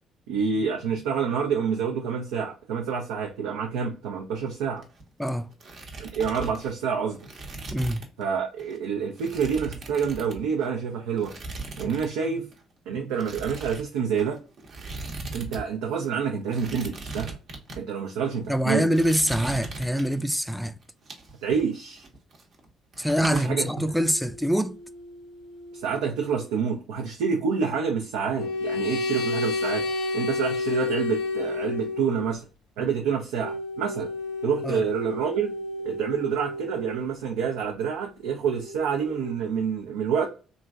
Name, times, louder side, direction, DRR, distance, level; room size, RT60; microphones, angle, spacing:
voice 1, 0.3-4.8 6.0-7.2 8.2-11.3 11.8-12.5 12.9-14.4 15.3-17.4 17.8-18.9 21.4-22.0 23.3-23.7 25.7-29.8 30.1-32.4 32.8-34.1 34.4-35.5 35.8-40.3, right 6 dB, 80° right, 0.4 m, -27 dB
sound 1, 4.7-5.2 5.5-8.2 8.6-8.8 9.2-10.8 11.2-12.1 12.4-12.6 13.2-15.6 15.9-16.0 16.5-17.8 18.4-18.6 18.9-20.4 20.8-22.7 22.9-23.4, right 3 dB, 60° right, 0.8 m, -39 dB
voice 2, 7.7-8.0 18.5-20.7 23.0-24.8 34.6-34.8, equal, ahead, 0.3 m, -25 dB
sound 2, 23.5-26.3 28.4-32.3 33.4-37.1 38.6-39.3, left 2 dB, 75° left, 0.5 m, -32 dB
2.9 x 2.4 x 2.3 m
hypercardioid pair, 55°, 0 cm